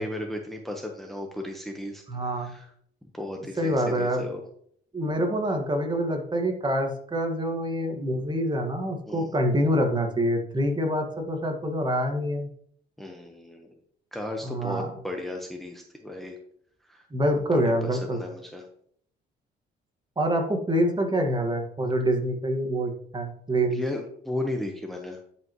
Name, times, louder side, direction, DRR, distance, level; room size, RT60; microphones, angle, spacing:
voice 1, 0.0-2.7 3.2-4.4 9.1-9.3 13.0-13.7 14.1-16.4 16.9-17.1 17.5-18.7 23.7-25.2, left 1 dB, ahead, 2 dB, 1.2 m, -35 dB
voice 2, 2.1-2.5 3.6-4.2 4.9-12.5 14.4-14.9 17.1-18.2 20.2-23.8, equal, 25° right, 3 dB, 1.8 m, -26 dB
10.5 x 5.2 x 3.1 m, 0.65 s
cardioid pair, 80°, 18 cm